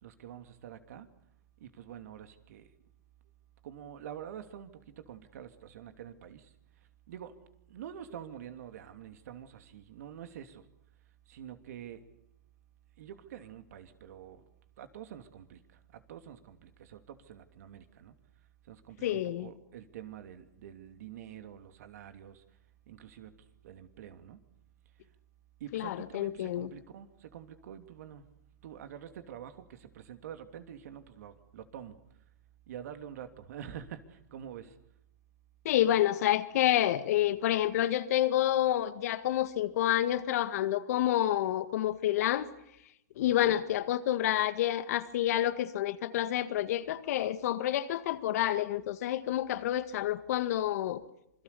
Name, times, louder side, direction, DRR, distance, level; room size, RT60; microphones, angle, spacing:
voice 1, 0.0-1.1 1.6-2.7 3.6-6.5 7.1-7.3 7.7-10.6 11.3-12.0 13.0-14.4 14.8-18.1 18.7-22.4 22.9-23.3 23.6-24.4 25.6-28.3 28.6-32.0 32.7-34.8 43.4-43.6, right 9 dB, 60° right, 8 dB, 2.9 m, -47 dB
voice 2, 19.0-19.5 25.7-26.7 35.7-42.5 43.2-51.0, left 12 dB, 60° left, 12 dB, 1.8 m, -28 dB
27.0 x 22.5 x 7.0 m, 0.80 s
hypercardioid pair, 120°, 10 cm